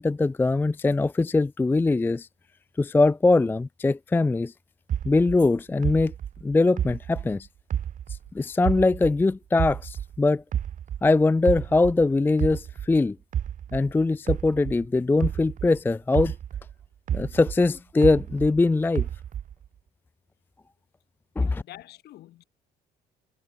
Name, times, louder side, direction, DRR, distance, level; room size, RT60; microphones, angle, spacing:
voice 1, 0.0-2.3 2.8-4.5 5.0-6.1 6.4-7.5 8.1-10.4 11.0-13.2 13.7-16.4 17.1-19.1 21.4-21.6, left 3 dB, 10° left, 0.4 m, -22 dB
sound 1, 4.9-8.3 8.6-11.1 11.5-15.8 16.1-18.6 19.0-19.7, right 9 dB, 50° right, 1.8 m, -30 dB
voice 2, 21.4-22.4, left 14 dB, 75° left, 4.8 m, -47 dB
cardioid pair, 110°, 17 cm